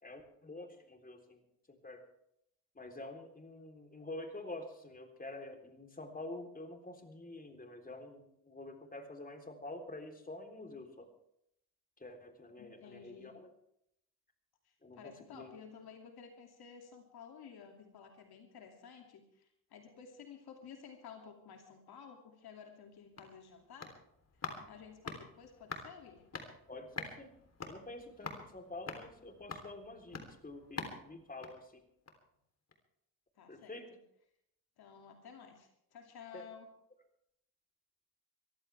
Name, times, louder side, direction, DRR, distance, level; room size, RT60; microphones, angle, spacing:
voice 1, 0.0-1.4 1.7-2.0 2.8-11.1 12.0-13.5 14.8-15.5 24.6-24.7 26.7-27.3 27.7-31.8 33.5-33.9 36.3-36.4, left 2 dB, 20° left, 4 dB, 3.6 m, -48 dB
voice 2, 12.6-13.4 14.6-23.9 24.7-26.3 33.4-34.0 34.8-36.7, left 6 dB, 70° left, 3 dB, 2.7 m, -53 dB
sound 1, 22.8-32.4 32.7-32.8, left 4 dB, 40° left, 3.5 m, -47 dB
22.5 x 15.0 x 3.5 m, 0.75 s
cardioid pair, 70°, 39 cm